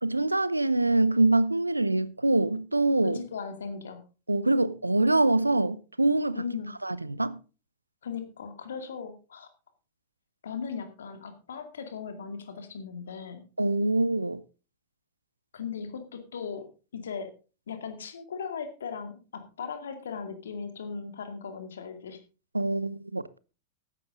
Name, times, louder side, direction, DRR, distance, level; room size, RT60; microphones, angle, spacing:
voice 1, 0.0-3.2 4.3-6.4 6.8-7.4 13.6-14.4 22.5-23.4, right 2 dB, 85° right, 0.6 m, -24 dB
voice 2, 3.0-4.0 6.3-6.7 8.0-9.5 10.4-13.4 15.5-16.6 16.9-17.3 17.7-22.2, left 6 dB, 65° left, 2.3 m, -38 dB
14.5 x 11.5 x 3.8 m
figure-of-eight pair, 90°, 0 cm